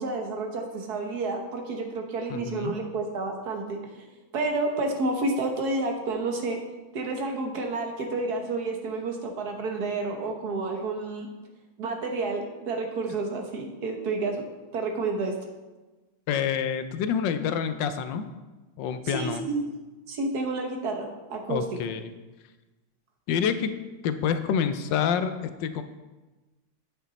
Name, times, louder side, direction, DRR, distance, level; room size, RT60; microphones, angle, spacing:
voice 1, 0.0-4.0 4.3-6.6 6.9-11.3 11.8-14.4 14.7-15.3 19.0-19.6 20.1-21.6, right 3 dB, 55° right, 3 dB, 1.5 m, -30 dB
voice 2, 2.3-2.7 16.3-18.3 18.8-19.4 21.5-22.1 23.3-23.7 24.0-25.8, left 7 dB, 70° left, 10 dB, 1.2 m, -27 dB
9.0 x 7.9 x 4.1 m, 1.2 s
omnidirectional pair, 2.3 m